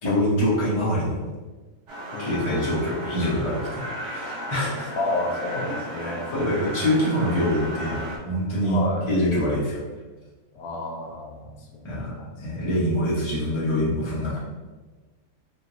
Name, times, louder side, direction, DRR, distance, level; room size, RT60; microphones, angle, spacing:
voice 1, 0.0-1.3 2.2-4.9 6.0-8.8 9.1-9.8 11.8-12.1 12.4-14.4, left 1 dB, 25° left, -7 dB, 0.8 m, -25 dB
sound 1, 1.9-8.2, equal, 60° right, 1.0 m, -34 dB
voice 2, 2.1-2.5 5.0-6.2 8.6-9.1 10.5-11.8 12.1-12.8, left 2 dB, 80° left, 0 dB, 1.1 m, -31 dB
3.2 x 2.9 x 2.6 m, 1.3 s
omnidirectional pair, 1.6 m